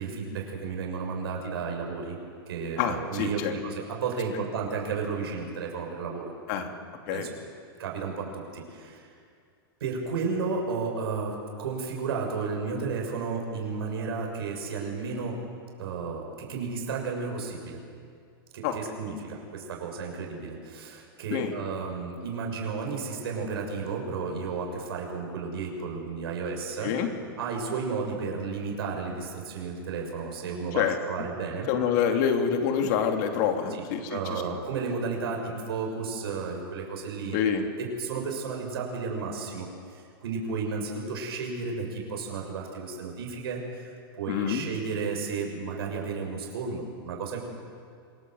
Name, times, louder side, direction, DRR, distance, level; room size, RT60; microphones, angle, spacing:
voice 1, 0.0-2.2 2.5-6.3 7.1-7.3 7.8-9.1 9.8-15.3 15.8-17.8 18.5-26.9 27.4-31.7 33.7-33.8 34.1-37.4 37.8-39.7 39.9-47.4, right 5 dB, 75° right, 1 dB, 6.6 m, -33 dB
voice 2, 2.8-3.5 6.5-6.7 7.1-7.3 18.6-18.7 21.3-21.5 26.8-27.1 30.7-31.0 31.7-34.4 37.3-37.7 44.3-44.7, left 8 dB, 45° left, 4 dB, 3.0 m, -26 dB
26.5 x 20.0 x 7.9 m, 2.3 s
supercardioid pair, 155°, 13 cm